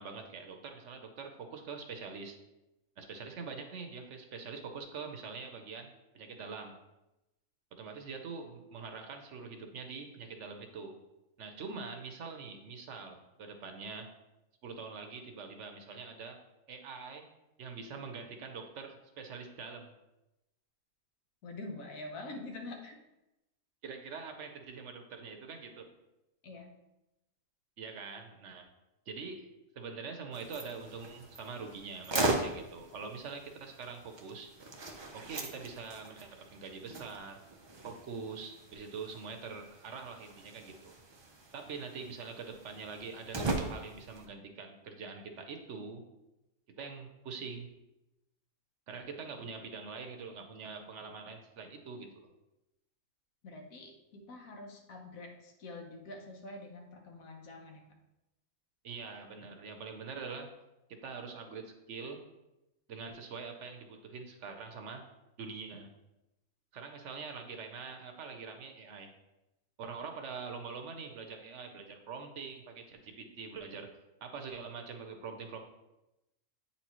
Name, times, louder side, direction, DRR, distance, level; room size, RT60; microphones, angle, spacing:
voice 1, 0.0-2.4 3.0-6.7 7.7-11.0 11.4-14.1 14.6-16.4 16.7-17.3 17.6-19.9 23.8-25.9 27.8-28.7 29.1-29.5 29.7-34.5 35.1-37.4 37.8-40.9 41.5-46.0 46.8-47.7 48.9-52.3 58.8-60.5 60.9-62.2 62.9-65.0 65.4-65.9 66.7-69.1 69.8-73.9 74.2-75.6, right 5 dB, 65° right, 5 dB, 1.0 m, -44 dB
voice 2, 21.4-23.0 26.4-26.7 53.4-57.8, left 2 dB, 80° left, 2 dB, 1.4 m, -46 dB
sound 1, 30.3-44.3, right 2 dB, 40° right, 0.3 m, -39 dB
8.6 x 4.2 x 3.0 m, 0.95 s
omnidirectional pair, 1.4 m